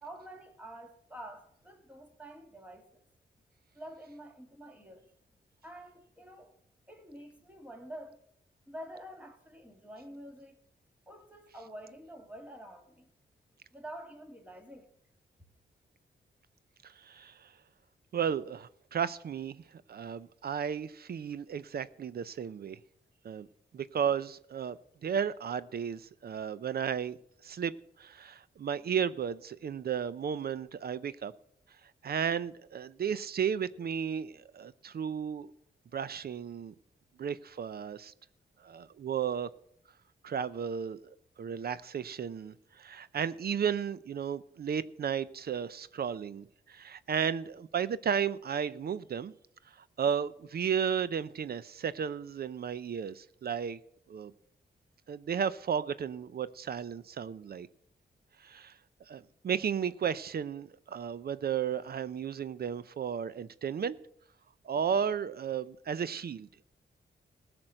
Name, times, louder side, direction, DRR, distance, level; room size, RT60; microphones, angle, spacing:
voice 1, 0.0-3.0 3.7-5.1 5.6-6.5 6.9-8.2 8.7-10.6 11.1-13.1 13.7-14.9, right 1 dB, 10° right, 2.5 m, -48 dB
voice 2, 16.8-17.5 18.1-22.8 23.2-23.5 23.7-27.2 27.4-27.7 28.0-31.3 32.0-35.5 35.9-36.7 37.2-38.1 38.6-39.5 40.2-49.3 49.7-53.8 54.1-54.3 55.1-57.7 58.4-58.8 59.1-64.0 64.6-66.5, right 7 dB, 55° right, 0.5 m, -34 dB
16.0 x 6.1 x 7.8 m
cardioid pair, 80°, 19 cm